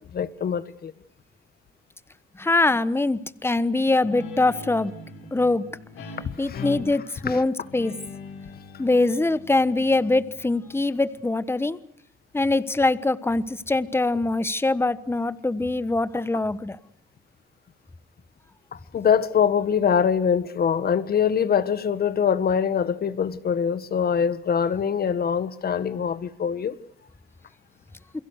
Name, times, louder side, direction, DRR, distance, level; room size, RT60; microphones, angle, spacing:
voice 1, 0.1-0.9 6.2-6.6 7.2-7.4 18.7-26.8, left 7 dB, 50° left, 1.6 m, -24 dB
voice 2, 2.4-4.9 5.3-5.6 6.4-7.9 8.8-11.8 12.3-16.8, left 2 dB, 10° left, 1.2 m, -23 dB
Guitar, 4.0-11.2, left 4 dB, 85° left, 6.0 m, -41 dB
29.0 x 22.5 x 6.6 m
cardioid pair, 90°, 20 cm